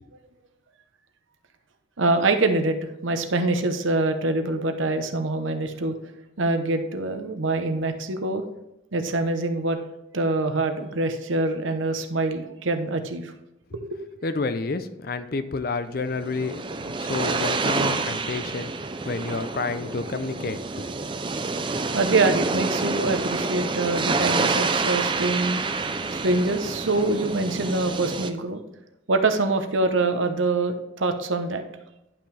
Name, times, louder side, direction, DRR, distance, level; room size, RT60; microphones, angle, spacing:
voice 1, 2.0-2.8 3.0-5.9 6.4-8.4 8.9-9.8 10.1-13.3 13.7-14.0 21.9-25.7 26.1-28.6 29.1-31.6, right 2 dB, 85° right, 7 dB, 0.9 m, -24 dB
voice 2, 14.2-18.7 19.0-20.9, left 3 dB, 50° left, 11 dB, 0.5 m, -30 dB
sound 1, 16.0-28.3, right 3 dB, 25° right, 0.4 m, -28 dB
11.0 x 5.9 x 3.4 m, 0.90 s
head